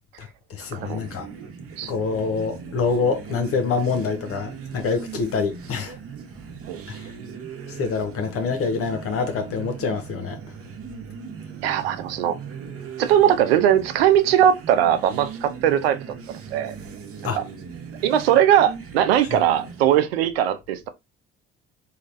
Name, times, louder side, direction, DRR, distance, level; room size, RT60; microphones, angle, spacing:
voice 1, 0.2-1.3 1.8-6.0 6.9-7.1 7.8-10.4 17.2-17.4, left 5 dB, 50° left, 0.6 m, -26 dB
sound 1, 0.6-20.1, right 6 dB, 50° right, 0.9 m, -39 dB
voice 2, 11.6-12.4 13.0-16.0 16.5-16.7 17.3-17.4 18.0-20.9, right 10 dB, 90° right, 0.5 m, -20 dB
3.1 x 2.8 x 2.5 m
hypercardioid pair, 55°, 29 cm